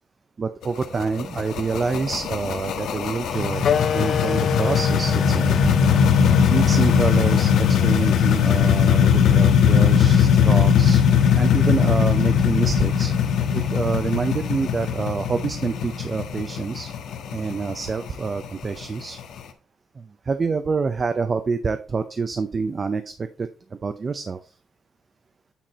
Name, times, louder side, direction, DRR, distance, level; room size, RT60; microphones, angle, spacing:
voice 1, 0.4-5.6 6.5-11.0 11.3-13.1 13.5-16.9 17.3-19.2 20.0-24.5, right 4 dB, 30° right, 9 dB, 0.5 m, -27 dB
sound 1, 0.6-19.4, left 7 dB, 80° left, 1.2 m, -19 dB
Wind instrument woodwind instrument, 3.6-8.8, left 7 dB, 45° left, 0.4 m, -28 dB
9.1 x 4.3 x 4.2 m, 0.35 s
cardioid pair, 170°, 0 cm